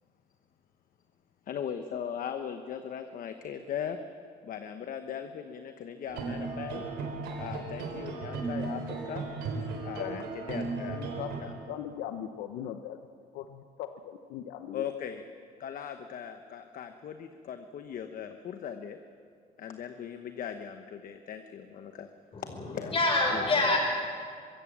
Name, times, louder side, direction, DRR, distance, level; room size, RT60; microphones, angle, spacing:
voice 1, 1.5-4.0 4.4-6.8 7.4-9.3 9.8-11.1 11.4-11.5 14.7-15.2 15.6-19.0 19.6-22.1 22.4-22.9 23.3-23.6, left 8 dB, 55° left, 8 dB, 1.0 m, -39 dB
sound 1, 6.1-11.4, right 3 dB, 75° right, 3.5 m, -36 dB
voice 2, 10.0-10.3 10.9-11.3 11.7-13.0 13.3-14.9, left 10 dB, 85° left, 8 dB, 0.8 m, -39 dB
voice 3, 22.3-23.8, left 2 dB, 35° left, 1 dB, 6.1 m, -27 dB
22.5 x 16.0 x 7.4 m, 2.2 s
cardioid pair, 110°, 17 cm